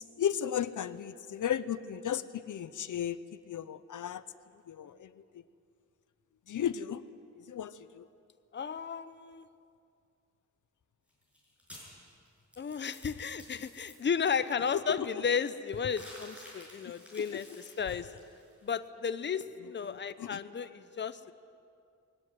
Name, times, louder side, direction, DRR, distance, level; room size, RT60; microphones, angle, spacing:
voice 1, 0.0-4.2 4.7-5.4 6.5-7.0 7.4-8.1 14.9-15.1 17.2-17.4 19.8-20.4, left 9 dB, 85° left, 14 dB, 0.8 m, -35 dB
voice 2, 8.5-9.5 12.6-17.5 17.8-18.1 18.6-21.3, left 6 dB, 40° left, 12 dB, 0.7 m, -33 dB
sound 1, 11.1-13.9 15.7-18.7, left 1 dB, 5° right, 6.8 m, -52 dB
21.0 x 17.5 x 9.4 m, 2.4 s
wide cardioid pair, 180°, 30 cm